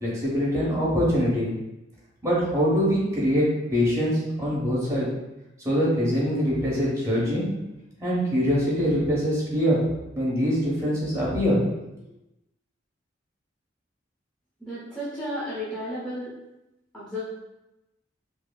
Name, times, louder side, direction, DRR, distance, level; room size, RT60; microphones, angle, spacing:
voice 1, 0.0-1.5 2.2-5.1 5.6-7.4 8.0-9.8 10.1-11.6, equal, 15° right, -7 dB, 1.1 m, -23 dB
voice 2, 14.6-16.4 16.9-17.2, equal, 5° left, -11 dB, 0.7 m, -33 dB
4.7 x 2.0 x 2.3 m, 0.94 s
head